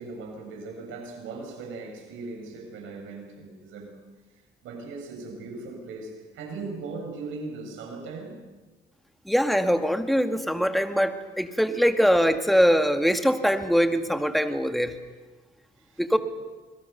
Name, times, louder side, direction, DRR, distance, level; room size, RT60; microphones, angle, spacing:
voice 1, 0.0-4.0 4.6-8.4 15.8-16.2, right 3 dB, 85° right, 1 dB, 7.4 m, -39 dB
voice 2, 9.3-14.9 16.0-16.2, equal, ahead, 7 dB, 2.1 m, -22 dB
27.0 x 22.0 x 7.0 m, 1.3 s
cardioid pair, 90°, 20 cm